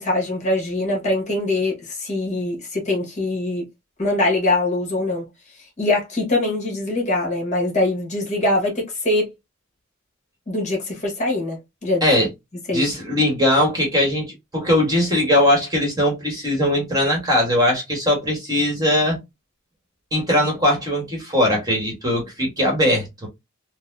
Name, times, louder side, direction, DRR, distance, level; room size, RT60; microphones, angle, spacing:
voice 1, 0.0-3.6 4.0-5.2 5.8-9.3 10.5-12.0 12.7-12.8, left 2 dB, 35° left, 1.5 m, -23 dB
voice 2, 12.7-19.2 20.1-23.3, left 1 dB, 20° right, 1.3 m, -20 dB
4.0 x 2.2 x 2.6 m
head